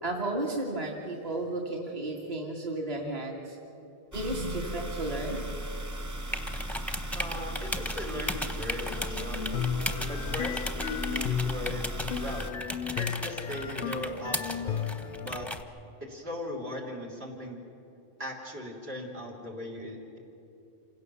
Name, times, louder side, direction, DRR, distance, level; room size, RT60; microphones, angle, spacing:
voice 1, 0.0-3.6 4.1-5.4, right 2 dB, 35° right, -1 dB, 2.0 m, -33 dB
sound 1, 4.1-12.5, right 1 dB, 20° right, 0.8 m, -37 dB
sound 2, 6.3-15.6, left 1 dB, ahead, 0.9 m, -37 dB
voice 2, 7.1-9.4 10.0-12.5 12.9-15.5 16.0-17.6 18.2-20.2, left 1 dB, 60° right, 0 dB, 3.5 m, -39 dB
sound 3, 8.8-15.3, left 8 dB, 55° left, 0.7 m, -34 dB
27.5 x 17.0 x 6.9 m, 2.8 s
omnidirectional pair, 1.2 m